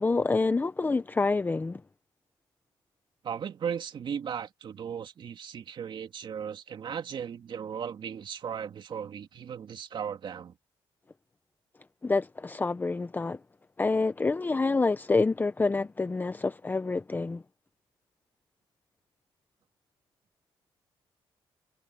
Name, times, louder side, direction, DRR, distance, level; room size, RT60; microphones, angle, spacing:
voice 1, 0.0-1.8 12.0-13.4 13.8-17.4, left 3 dB, 20° left, 0.7 m, -27 dB
voice 2, 3.2-10.5, right 7 dB, 55° right, 2.2 m, -36 dB
cardioid pair, 100°, 9 cm